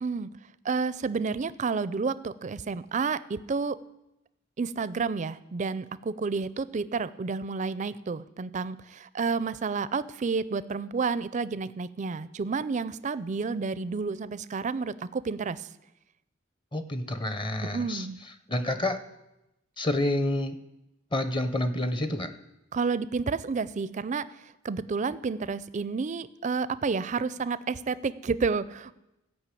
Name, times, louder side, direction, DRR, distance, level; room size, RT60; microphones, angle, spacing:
voice 1, 0.6-3.8 4.6-15.7 17.6-18.2 22.7-24.3 24.6-29.0, right 4 dB, 35° right, 16 dB, 0.4 m, -30 dB
voice 2, 16.7-18.1 18.5-19.0 19.8-20.6 21.1-22.3, left 1 dB, 25° left, 10 dB, 0.7 m, -28 dB
15.0 x 5.5 x 8.4 m, 0.93 s
head